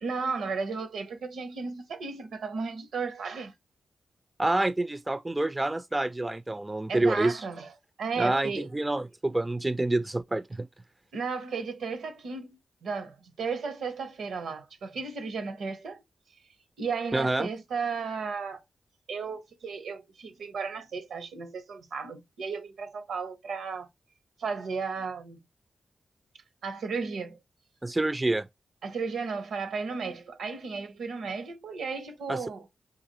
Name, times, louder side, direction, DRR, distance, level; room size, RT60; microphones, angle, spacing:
voice 1, 0.0-3.5 6.9-7.7 8.0-8.7 11.1-16.0 16.8-18.6 19.1-23.9 24.4-25.4 26.6-27.4 28.8-32.7, right 5 dB, 85° right, 0.7 m, -34 dB
voice 2, 4.4-7.4 8.2-10.7 17.1-17.5 27.8-28.5 32.3-32.4, right 2 dB, 20° right, 0.3 m, -27 dB
3.9 x 2.5 x 2.9 m
supercardioid pair, 45°, 0 cm